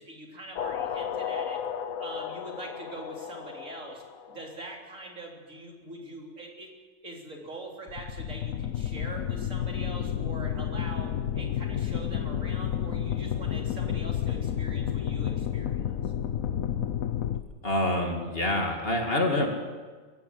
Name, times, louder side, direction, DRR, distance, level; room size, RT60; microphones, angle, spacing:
voice 1, 0.0-1.6 2.0-6.7 7.0-16.1, right 2 dB, 65° right, -1 dB, 4.1 m, -43 dB
sound 1, 0.6-4.5 7.9-17.4, left 9 dB, 75° left, 1.3 m, -31 dB
voice 2, 17.6-19.5, left 1 dB, 45° left, 2 dB, 2.8 m, -26 dB
22.5 x 15.5 x 7.9 m, 1.4 s
omnidirectional pair, 1.4 m